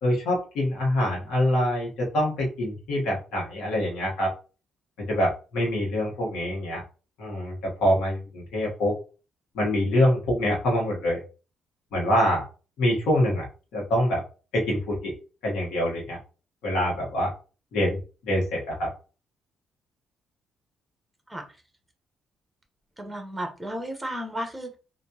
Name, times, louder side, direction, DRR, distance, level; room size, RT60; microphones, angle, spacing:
voice 1, 0.0-4.3 5.1-6.8 7.2-8.9 9.5-11.2 11.9-12.4 12.8-13.4 13.7-14.2 14.5-15.1 15.4-16.2 16.6-17.3 17.7-18.9, left 1 dB, 85° left, -3 dB, 1.3 m, -25 dB
voice 2, 23.0-24.8, equal, 10° right, 3 dB, 1.0 m, -33 dB
3.5 x 2.6 x 2.9 m, 0.34 s
cardioid pair, 90°, 0 cm